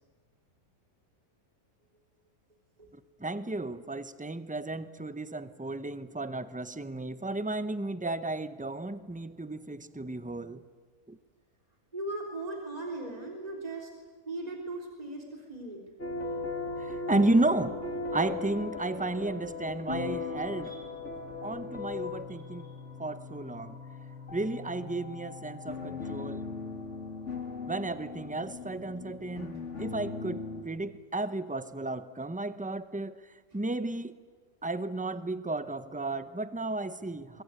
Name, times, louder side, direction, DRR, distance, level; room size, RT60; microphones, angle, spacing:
voice 1, 3.2-10.6 11.1-11.2 16.8-17.8 18.1-20.8 21.4-22.7 23.0-23.8 24.3-26.4 27.7-34.2 34.6-37.4, right 2 dB, 10° right, 13 dB, 0.4 m, -33 dB
voice 2, 11.9-13.9 14.3-15.8 20.6-20.8 22.6-22.7 33.5-33.6, right 2 dB, 25° right, 1 dB, 3.5 m, -38 dB
sound 1, 16.0-30.6, left 4 dB, 55° left, 2.7 m, -38 dB
23.5 x 21.5 x 9.6 m, 1.5 s
omnidirectional pair, 1.5 m